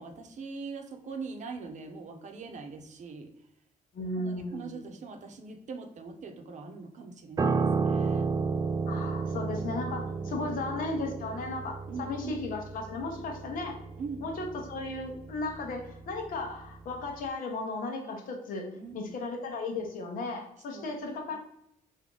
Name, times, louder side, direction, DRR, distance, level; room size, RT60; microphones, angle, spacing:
voice 1, 0.0-3.3 4.1-8.3 10.0-10.6 11.9-12.4 14.0-14.3 18.7-19.2 20.7-21.4, right 4 dB, 60° right, 5 dB, 0.7 m, -42 dB
voice 2, 3.9-4.8 8.9-13.8 14.2-21.4, left 3 dB, 80° left, 2 dB, 0.9 m, -35 dB
Piano, 7.4-16.8 17.0-17.3, right 4 dB, 25° right, 0.4 m, -32 dB
3.6 x 2.7 x 3.7 m, 0.74 s
cardioid pair, 95°, 14 cm